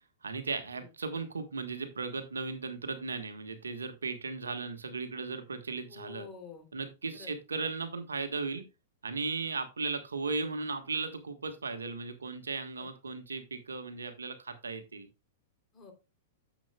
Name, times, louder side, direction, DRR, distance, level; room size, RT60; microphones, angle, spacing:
voice 1, 0.2-6.3 6.7-8.6 9.0-15.1, right 4 dB, 85° right, 8 dB, 1.4 m, -36 dB
voice 2, 5.9-6.6 7.1-7.3 12.8-12.9 15.7-15.9, left 6 dB, 25° left, 3 dB, 3.0 m, -48 dB
10.5 x 7.3 x 2.3 m, 0.27 s
hypercardioid pair, 105°, 0 cm